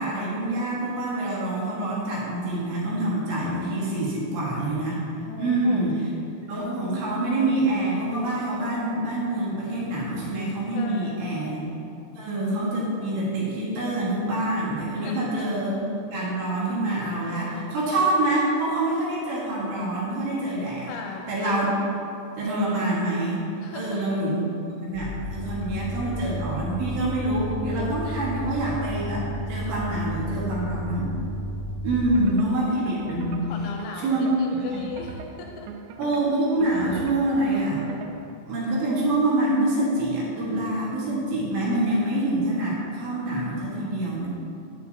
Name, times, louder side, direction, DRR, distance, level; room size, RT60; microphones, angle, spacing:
voice 1, 0.0-5.0 5.4-6.0 6.5-11.7 12.2-20.9 21.3-21.7 22.4-23.4 23.7-24.5 24.8-31.1 31.8-33.4 34.0-34.3 34.6-34.8 36.0-37.8 38.5-44.3, right 1 dB, 65° right, -6 dB, 3.4 m, -26 dB
voice 2, 5.3-5.9 10.7-11.4 14.9-15.5 20.9-21.4 23.6-24.2 25.5-25.7 32.1-32.7 33.5-35.7, left 5 dB, 85° left, 2 dB, 2.9 m, -39 dB
sound 1, 24.9-32.2, equal, 65° left, 1.2 m, -32 dB
sound 2, 32.1-38.4, right 5 dB, 85° right, 3.3 m, -41 dB
11.5 x 7.9 x 2.7 m, 2.6 s
omnidirectional pair, 5.9 m